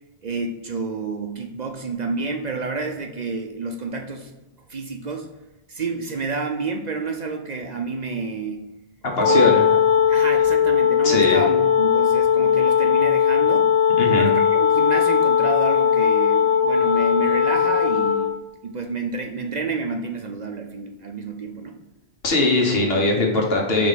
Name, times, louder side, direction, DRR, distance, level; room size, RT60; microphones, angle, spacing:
voice 1, 0.2-4.3 4.7-5.3 5.7-8.7 9.2-9.6 10.0-13.7 14.1-18.3 18.6-21.8, right 4 dB, 50° right, 4 dB, 0.6 m, -29 dB
Wind instrument woodwind instrument, 9.1-18.4, left 7 dB, 30° left, 0.7 m, -18 dB
voice 2, 9.2-9.6 11.0-11.4 14.0-14.3 22.2-23.9, left 2 dB, 70° left, 0 dB, 1.5 m, -20 dB
5.1 x 3.5 x 5.6 m, 1.0 s
omnidirectional pair, 1.0 m